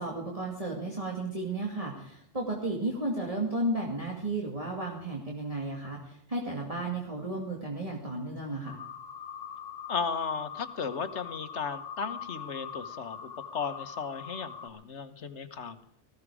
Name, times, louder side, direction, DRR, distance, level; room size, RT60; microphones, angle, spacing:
voice 1, 0.0-8.8, right 2 dB, 30° right, -2 dB, 2.6 m, -33 dB
sound 1, 8.7-14.7, left 7 dB, 50° left, 2.0 m, -42 dB
voice 2, 9.9-15.8, left 5 dB, 70° left, 11 dB, 1.5 m, -35 dB
19.0 x 15.0 x 4.9 m, 0.67 s
omnidirectional pair, 1.2 m